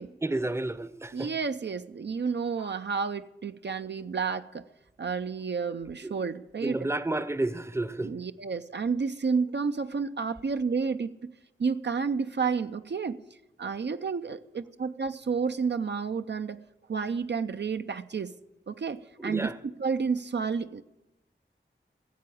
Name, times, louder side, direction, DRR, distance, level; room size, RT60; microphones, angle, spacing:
voice 1, 0.2-1.3 6.0-6.3 6.6-8.1 19.2-19.6, right 2 dB, 15° right, 0.6 m, -31 dB
voice 2, 1.1-4.7 5.0-6.8 8.0-11.3 11.6-13.2 13.6-16.6 16.9-18.3 18.7-20.8, right 5 dB, 60° right, 0.4 m, -30 dB
15.5 x 7.7 x 8.4 m
wide cardioid pair, 55°, 20 cm